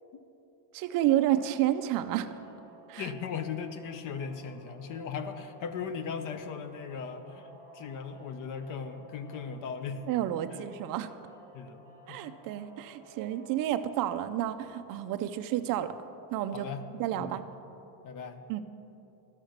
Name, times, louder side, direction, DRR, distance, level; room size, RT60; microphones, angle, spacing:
voice 1, 0.7-2.3 2.9-3.1 10.1-11.1 12.1-15.9 16.3-16.7 17.0-17.4 18.5-18.6, right 12 dB, 45° right, 10 dB, 0.5 m, -30 dB
sound 1, 0.8-13.6, right 2 dB, 15° left, 2.3 m, -55 dB
voice 2, 3.0-10.0 11.5-12.4 16.5-16.8 17.1-17.4 18.0-18.4, left 6 dB, 40° left, 10 dB, 0.6 m, -38 dB
13.0 x 5.8 x 6.5 m, 3.0 s
cardioid pair, 165°, 49 cm